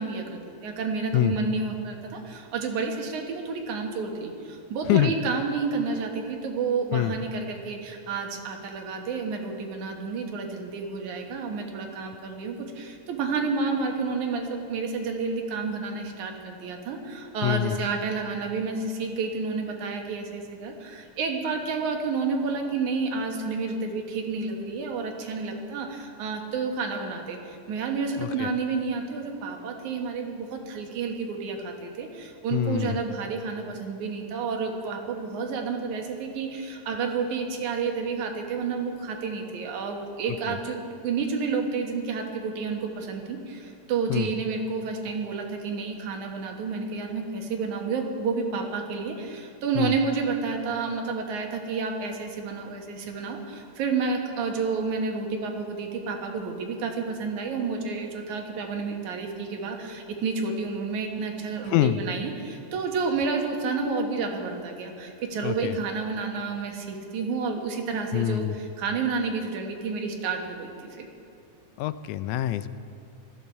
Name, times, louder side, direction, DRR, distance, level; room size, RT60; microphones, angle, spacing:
voice 1, 0.0-71.1, right 4 dB, 90° right, 2 dB, 2.9 m, -30 dB
voice 2, 17.4-17.8 28.2-28.5 32.5-33.0 40.5-40.6 44.1-44.3 49.8-49.9 61.7-62.0 65.4-65.8 68.1-68.6 71.8-72.7, left 13 dB, 90° left, 13 dB, 2.0 m, -25 dB
19.5 x 13.5 x 4.6 m, 2.4 s
omnidirectional pair, 3.3 m